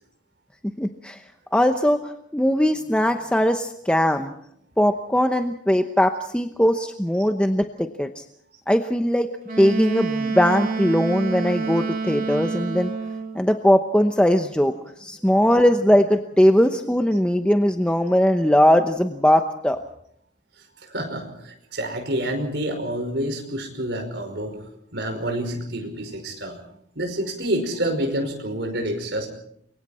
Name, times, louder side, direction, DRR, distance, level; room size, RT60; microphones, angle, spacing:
voice 1, 0.8-1.2 1.5-4.3 4.8-8.2 8.7-9.3 9.6-12.9 13.3-14.7 15.0-19.8, equal, 5° left, 6 dB, 0.9 m, -20 dB
Wind instrument woodwind instrument, 9.4-13.4, right 4 dB, 50° right, 3.1 m, -28 dB
voice 2, 20.8-24.6 24.9-26.6 27.0-29.3, right 1 dB, 65° right, 4 dB, 5.3 m, -28 dB
29.0 x 23.5 x 4.4 m, 0.68 s
head